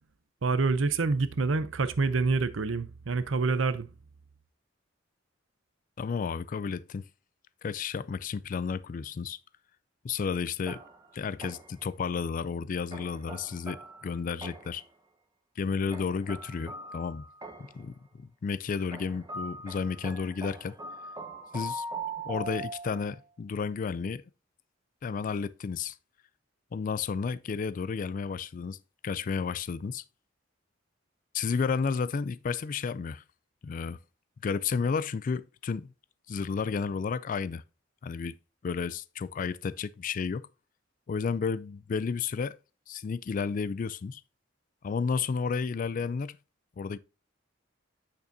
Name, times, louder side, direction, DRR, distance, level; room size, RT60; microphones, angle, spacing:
voice 1, 0.4-3.9, right 4 dB, 75° right, 0.7 m, -27 dB
voice 2, 6.0-7.0 7.6-9.4 10.0-10.8 11.1-14.8 15.6-17.3 17.6-20.8 21.5-21.8 22.2-24.2 25.0-26.0 26.7-28.8 29.0-30.0 31.3-33.2 33.6-34.0 34.4-35.9 36.3-37.6 38.0-38.4 38.6-40.5 41.1-42.6 42.9-44.2 44.8-46.4 46.8-47.0, left 5 dB, 40° left, 0.3 m, -32 dB
sound 1, 10.7-11.9 12.9-14.9 15.9-17.9 18.9-23.2, right 2 dB, 20° right, 1.0 m, -41 dB
8.2 x 6.8 x 2.7 m
head